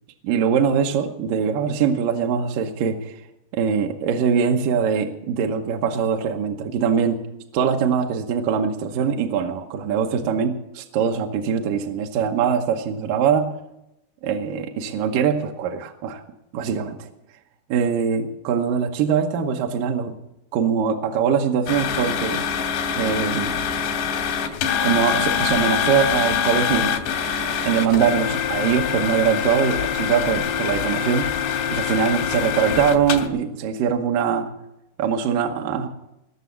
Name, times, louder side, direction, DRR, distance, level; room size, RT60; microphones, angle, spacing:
voice 1, 0.2-3.2 3.5-7.2 7.5-13.6 14.2-16.2 16.5-17.1 17.7-20.1 20.5-22.4 22.9-23.6 24.8-27.0 27.6-31.3 31.7-34.5 35.0-35.9, right 7 dB, 70° right, 3 dB, 2.2 m, -22 dB
sound 1, 21.7-33.3, left 8 dB, 90° left, 3.2 m, -24 dB
20.0 x 6.9 x 8.1 m, 0.86 s
omnidirectional pair, 4.8 m